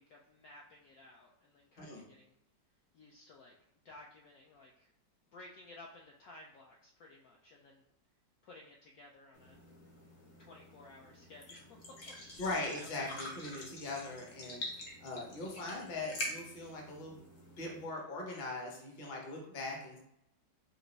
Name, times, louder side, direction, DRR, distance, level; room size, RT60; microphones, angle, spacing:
voice 1, 0.0-2.3 2.9-3.6 3.8-4.9 5.3-7.8 8.4-9.6 10.4-12.9, left 2 dB, 70° left, -1 dB, 0.9 m, -56 dB
sound 1, 9.3-17.8, left 1 dB, 55° left, 1.2 m, -46 dB
voice 2, 12.4-14.6 15.0-17.2 17.6-20.0, left 2 dB, 35° left, -1 dB, 0.8 m, -40 dB
5.1 x 2.6 x 3.1 m, 0.81 s
omnidirectional pair, 1.9 m